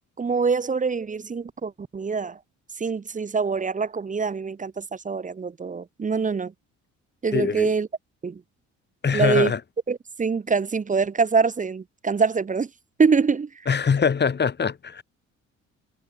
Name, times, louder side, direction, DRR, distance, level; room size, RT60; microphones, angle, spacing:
voice 1, 0.2-2.4 2.8-6.5 7.2-7.9 8.2-8.4 9.1-9.5 9.9-12.7 13.0-13.5, right 5 dB, 25° right, 0.9 m, -24 dB
voice 2, 7.3-7.7 9.0-9.6 13.7-15.0, left 6 dB, 35° left, 2.1 m, -23 dB
cardioid pair, 85°, 30 cm